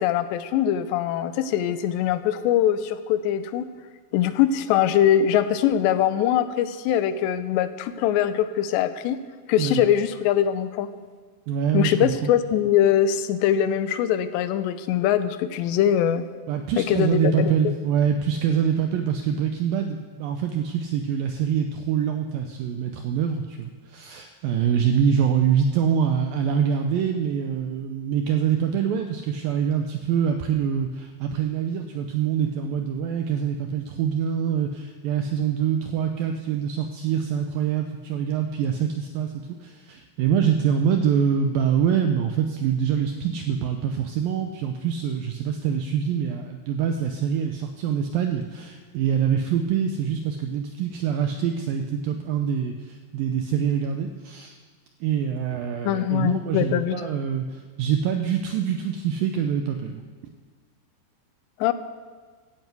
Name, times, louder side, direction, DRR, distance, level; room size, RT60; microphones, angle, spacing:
voice 1, 0.0-3.7 4.1-9.2 9.5-10.9 11.7-16.3 16.8-17.7 55.8-57.1 61.6-61.7, left 10 dB, 85° left, 12 dB, 2.9 m, -22 dB
voice 2, 11.5-12.3 16.5-54.6 55.0-60.0, right 8 dB, 80° right, 5 dB, 2.0 m, -25 dB
14.0 x 9.0 x 8.2 m, 1.5 s
omnidirectional pair, 4.9 m